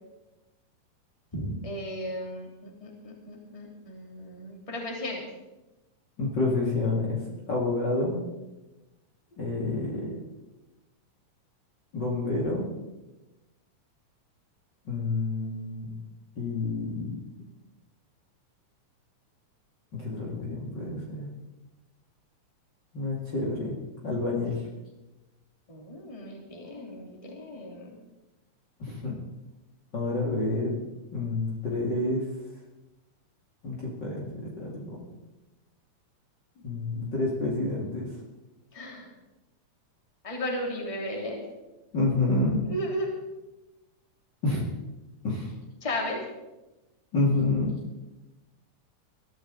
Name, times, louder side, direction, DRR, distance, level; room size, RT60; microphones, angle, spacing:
voice 1, 1.3-5.2 25.7-27.9 38.7-39.1 40.2-41.4 42.6-43.1 45.8-46.2, equal, 10° left, -1 dB, 2.7 m, -35 dB
voice 2, 6.2-7.2 7.5-8.3 9.4-10.2 11.9-12.7 14.8-15.9 16.4-17.2 19.9-21.3 22.9-23.7 24.0-24.6 28.8-29.2 29.9-30.8 31.1-32.2 33.6-35.0 36.6-38.1 41.9-42.6 44.4-44.6 45.2-45.5 47.1-47.7, left 2 dB, 35° left, -3 dB, 2.7 m, -28 dB
21.0 x 14.0 x 4.1 m, 1.0 s
omnidirectional pair, 3.7 m